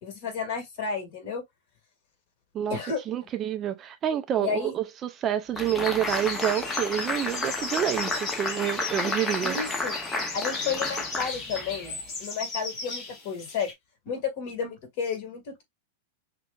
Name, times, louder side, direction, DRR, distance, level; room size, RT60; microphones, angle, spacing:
voice 1, 0.0-1.4 2.7-3.0 4.4-4.7 9.4-10.0 10.3-13.7 14.1-15.6, left 6 dB, 50° left, 1.8 m, -32 dB
voice 2, 3.1-9.6 10.1-10.3, right 10 dB, 25° right, 0.4 m, -28 dB
sound 1, 5.6-12.0, left 2 dB, 10° left, 0.6 m, -32 dB
sound 2, 5.7-13.7, left 3 dB, 30° left, 1.6 m, -36 dB
6.1 x 2.2 x 2.3 m
supercardioid pair, 150°, 0 cm